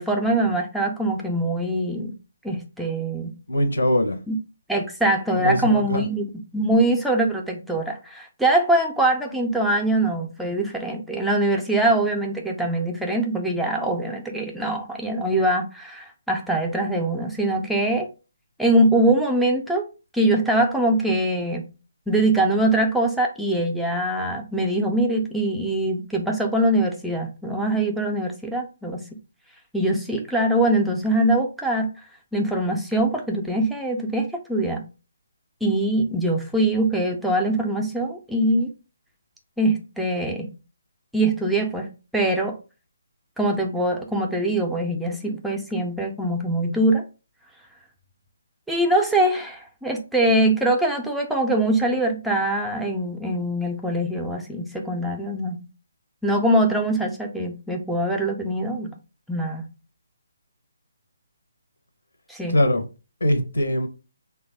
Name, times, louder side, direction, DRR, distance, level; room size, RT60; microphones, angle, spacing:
voice 1, 0.0-2.1 2.4-3.4 4.3-4.4 4.7-6.3 6.5-18.1 18.6-19.9 20.1-21.7 22.1-29.0 29.7-31.9 32.3-34.8 35.6-38.7 39.6-40.5 41.1-42.6 43.4-47.0 48.7-55.6 56.2-58.9 59.3-59.7 62.3-62.6, right 1 dB, ahead, 0.4 m, -23 dB
voice 2, 3.5-4.2 5.3-6.0 62.5-62.8 63.2-63.9, left 1 dB, 70° left, 0.8 m, -21 dB
3.3 x 2.2 x 3.3 m
figure-of-eight pair, 140°, 0 cm